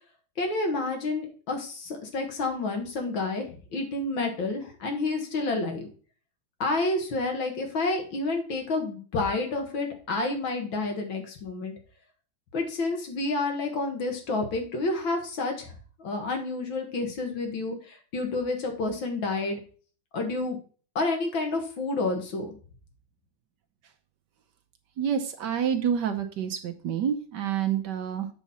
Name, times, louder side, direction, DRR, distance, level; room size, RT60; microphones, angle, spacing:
voice 1, 0.4-5.9 6.6-11.7 12.5-15.7 16.0-19.6 20.1-20.6 21.0-22.5, left 3 dB, 70° left, 3 dB, 2.3 m, -29 dB
voice 2, 25.0-28.3, right 8 dB, 65° right, 5 dB, 1.3 m, -28 dB
8.1 x 6.0 x 4.2 m, 0.40 s
omnidirectional pair, 2.2 m